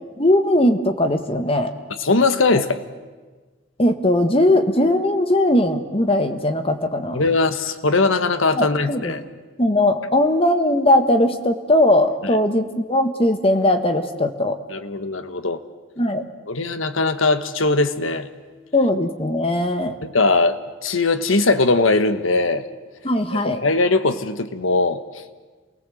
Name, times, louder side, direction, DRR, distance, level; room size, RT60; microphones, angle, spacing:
voice 1, 0.2-1.7 3.8-7.2 8.5-9.1 9.6-14.6 16.0-16.2 18.7-20.0 23.0-23.6, left 1 dB, 30° left, 7 dB, 1.4 m, -19 dB
voice 2, 2.0-2.8 7.1-9.2 14.7-15.6 16.5-18.3 20.0-22.6 23.3-25.0, left 3 dB, 85° left, 10 dB, 1.4 m, -20 dB
28.0 x 19.5 x 7.8 m, 1.3 s
head